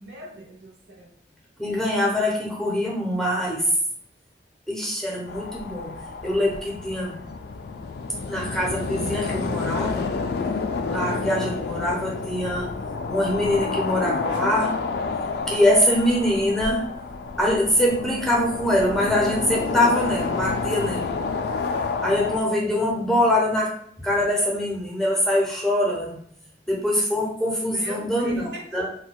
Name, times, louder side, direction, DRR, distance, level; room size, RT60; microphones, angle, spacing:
voice 1, 0.0-1.1 14.3-14.4 27.7-28.6, right 1 dB, 75° right, 1 dB, 0.7 m, -39 dB
voice 2, 1.6-3.7 4.7-5.9 6.2-7.2 8.3-10.1 10.9-12.7 13.1-14.7 15.5-16.8 17.4-21.1 22.0-26.2 26.7-28.9, left 1 dB, 5° left, -3 dB, 0.6 m, -23 dB
sound 1, 5.3-22.4, left 4 dB, 60° left, 0.3 m, -29 dB
4.4 x 2.2 x 2.2 m, 0.64 s
head